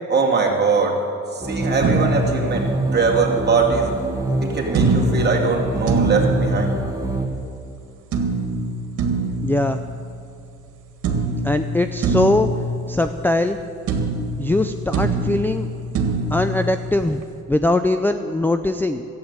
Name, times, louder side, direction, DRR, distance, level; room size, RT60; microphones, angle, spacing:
voice 1, 0.1-1.0 1.3-3.9 4.4-6.8, right 4 dB, 35° right, -1 dB, 2.5 m, -21 dB
sound 1, 1.4-7.3, right 2 dB, 10° right, 1.6 m, -25 dB
sound 2, 1.8-3.3 4.7-7.4 8.1-10.7 11.0-13.6 13.9-17.3, right 2 dB, 75° right, 1.7 m, -24 dB
voice 2, 9.4-9.8 11.4-12.5 12.9-13.6 14.4-15.7 16.3-17.2 17.5-19.0, left 2 dB, 5° left, 9 dB, 0.4 m, -21 dB
13.0 x 8.8 x 8.1 m, 2.5 s
cardioid pair, 90°, 30 cm